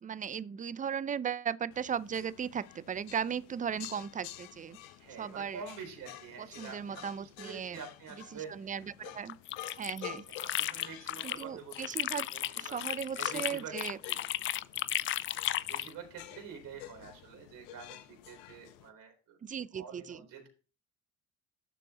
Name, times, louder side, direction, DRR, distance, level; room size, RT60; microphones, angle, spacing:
voice 1, 0.0-4.8 5.2-5.6 6.4-7.8 8.3-9.4 9.8-10.2 11.2-12.3 12.6-14.0 19.4-20.2, right 7 dB, 20° right, 0.5 m, -37 dB
sound 1, 1.7-18.9, left 13 dB, 70° left, 0.9 m, -50 dB
voice 2, 5.0-8.7 9.0-9.1 10.4-12.8 13.1-13.7 14.0-14.2 15.6-19.4 19.7-20.5, right 6 dB, 50° right, 4.1 m, -47 dB
sound 2, 9.3-11.4 11.7-15.9, left 13 dB, 30° left, 0.4 m, -34 dB
12.0 x 6.9 x 3.0 m
hypercardioid pair, 65°, 40 cm